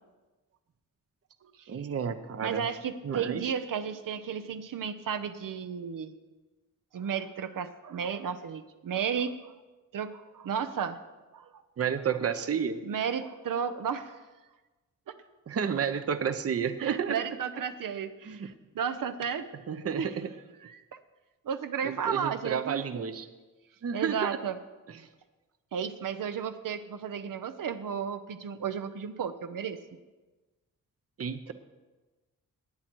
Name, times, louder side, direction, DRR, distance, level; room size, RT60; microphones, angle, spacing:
voice 1, 1.7-2.6 3.0-3.5 11.8-12.8 15.5-17.2 18.3-18.5 19.7-20.3 21.8-23.3 23.8-24.4 31.2-31.5, right 7 dB, 45° right, 10 dB, 0.7 m, -31 dB
voice 2, 2.4-6.1 6.9-9.4 9.9-11.0 11.3-11.6 12.8-14.2 15.1-15.2 16.8-19.5 20.0-20.2 20.6-21.0 21.4-23.1 23.9-24.6 25.7-29.8, right 7 dB, 80° right, 10 dB, 0.8 m, -33 dB
20.0 x 8.8 x 4.6 m, 1.2 s
wide cardioid pair, 135°, 33 cm